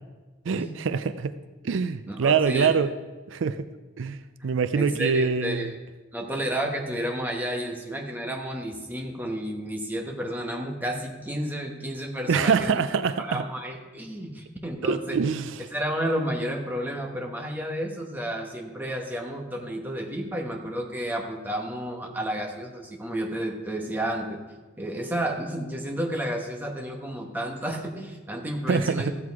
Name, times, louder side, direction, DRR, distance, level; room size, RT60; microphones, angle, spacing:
voice 1, 0.5-1.3 1.6-2.9 3.3-3.7 4.0-4.2 4.4-5.7 12.3-13.4 14.8-15.6 28.7-29.1, right 5 dB, 65° right, 12 dB, 0.4 m, -24 dB
voice 2, 2.1-2.7 4.7-5.7 6.1-12.8 13.2-15.2 15.7-24.4 24.8-29.1, right 1 dB, 10° right, 1 dB, 1.1 m, -31 dB
14.0 x 7.7 x 4.7 m, 1.3 s
head